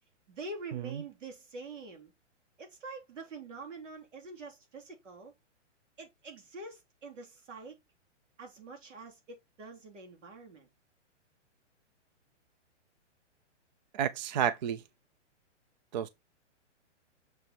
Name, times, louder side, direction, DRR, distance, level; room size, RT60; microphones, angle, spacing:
voice 1, 0.3-2.1 2.6-5.3 6.0-7.8 8.4-10.7, right 3 dB, 85° right, 3.3 m, -45 dB
voice 2, 13.9-14.8 15.9-16.1, right 9 dB, 40° right, 0.5 m, -31 dB
6.7 x 4.3 x 4.2 m
hypercardioid pair, 160°, 37 cm